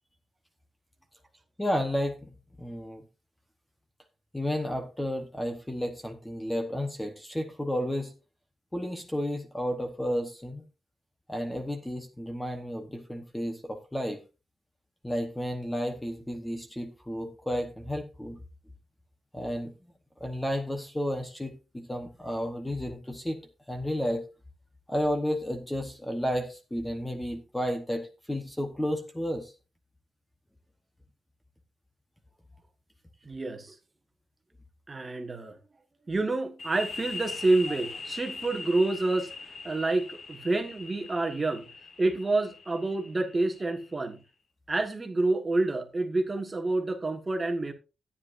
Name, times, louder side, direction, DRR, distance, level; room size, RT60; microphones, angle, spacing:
voice 1, 1.6-2.3 2.6-3.0 4.3-8.1 8.7-10.6 11.3-14.2 15.0-18.4 19.3-19.7 20.2-23.4 23.7-24.2 24.9-29.5, equal, 5° left, 1.1 m, -32 dB
voice 2, 33.2-33.8 34.9-35.6 36.1-39.3 39.6-41.7 42.0-44.2 44.7-47.7, right 2 dB, 20° right, 1.4 m, -28 dB
sound 1, 36.6-44.1, left 4 dB, 45° left, 1.3 m, -41 dB
14.0 x 9.8 x 2.6 m
wide cardioid pair, 170°, 0 cm